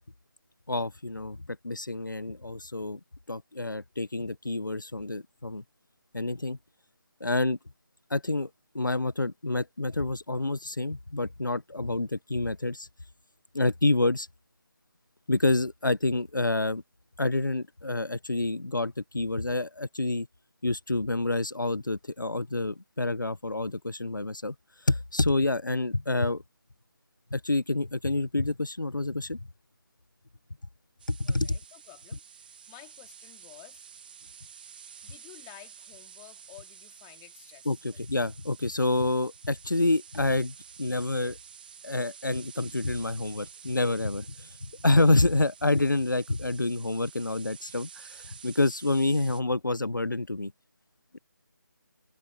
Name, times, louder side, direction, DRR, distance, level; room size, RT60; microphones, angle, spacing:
voice 1, 0.7-1.4 1.6-3.0 3.3-5.6 6.1-6.6 7.2-7.6 8.1-8.5 8.7-12.9 13.5-14.3 15.3-16.8 17.2-20.3 20.6-24.5 24.8-26.4 27.3-29.4 31.1-31.6 37.7-41.4 41.8-44.5 44.8-50.5 51.1-51.2, left 2 dB, 75° left, 1.2 m, -28 dB
sound 1, 31.0-49.4, right 7 dB, 25° right, 1.5 m, -50 dB
voice 2, 31.2-33.9 35.0-38.0, left 34 dB, 10° left, 3.3 m, -53 dB
figure-of-eight pair, 155°, 11 cm